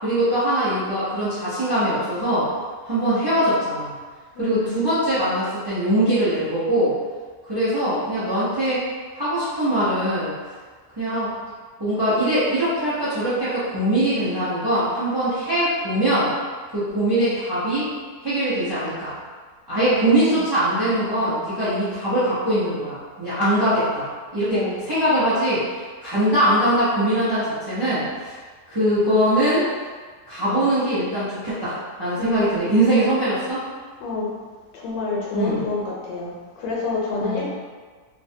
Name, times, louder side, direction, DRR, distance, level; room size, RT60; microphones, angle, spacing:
voice 1, 0.0-2.5 2.8-3.9 4.4-6.9 7.5-8.8 9.1-10.3 11.0-11.3 11.8-16.3 16.7-17.9 18.2-19.1 19.7-24.1 24.3-28.3 28.7-29.7 30.3-33.6 35.3-35.6 37.2-37.4, right 1 dB, 35° right, -12 dB, 0.4 m, -22 dB
voice 2, 4.4-4.8 19.7-20.0 24.5-24.7 32.2-32.6 34.0-34.3 34.7-37.5, left 3 dB, 90° left, -3 dB, 1.3 m, -28 dB
3.1 x 2.1 x 2.7 m, 1.5 s
omnidirectional pair, 1.8 m